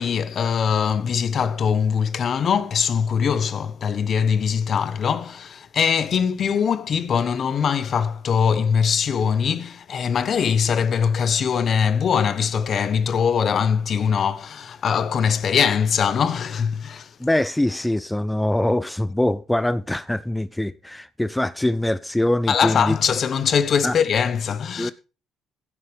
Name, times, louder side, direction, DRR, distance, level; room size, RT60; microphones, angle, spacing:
voice 1, 0.0-17.1 22.5-24.9, left 7 dB, 50° left, 1.2 m, -22 dB
voice 2, 17.2-23.0 23.8-24.0 24.8-24.9, left 1 dB, 5° left, 0.5 m, -23 dB
16.0 x 9.9 x 3.5 m
cardioid pair, 105°, 0 cm